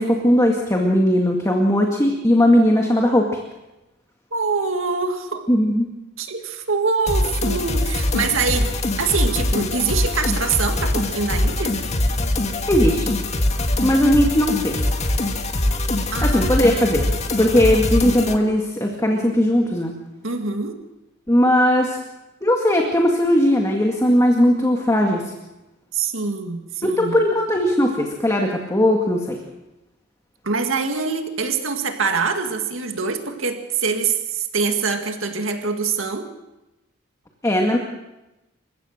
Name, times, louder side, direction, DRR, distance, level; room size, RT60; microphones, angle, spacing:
voice 1, 0.0-3.4 5.5-5.9 12.7-13.1 13.8-14.9 16.2-20.0 21.3-22.0 22.4-25.3 26.8-29.4 37.4-37.8, left 1 dB, 15° left, 1 dB, 2.0 m, -18 dB
voice 2, 4.3-5.4 6.2-8.7 9.0-11.8 16.1-16.6 20.2-20.8 25.9-27.2 30.4-36.3, right 4 dB, 80° right, 5 dB, 2.0 m, -24 dB
sound 1, 7.1-18.4, left 1 dB, 35° left, 1.8 m, -23 dB
28.5 x 15.5 x 6.5 m, 0.99 s
head